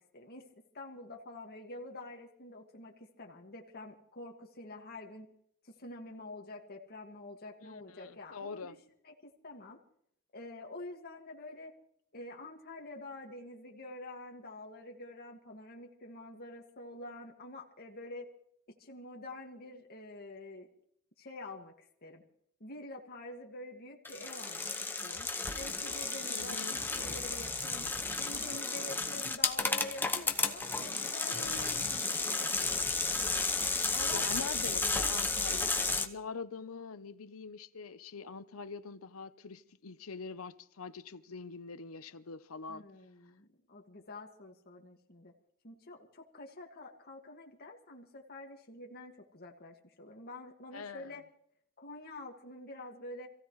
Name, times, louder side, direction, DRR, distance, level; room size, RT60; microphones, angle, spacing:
voice 1, 0.0-5.3 5.6-8.8 9.0-9.8 10.3-11.7 12.1-18.3 18.7-20.7 21.2-22.2 22.6-24.7 25.0-25.3 25.5-27.9 28.2-31.9 32.3-32.5 33.9-34.5 42.7-45.3 45.6-51.2 51.8-53.3, left 2 dB, 50° left, 1.9 m, -47 dB
voice 2, 7.6-8.8 26.3-26.8 31.2-32.1 34.1-42.9 50.7-51.2, left 4 dB, 85° left, 0.8 m, -44 dB
Gear Change OS, 24.1-36.1, left 3 dB, 10° left, 0.9 m, -33 dB
27.5 x 15.5 x 3.2 m
head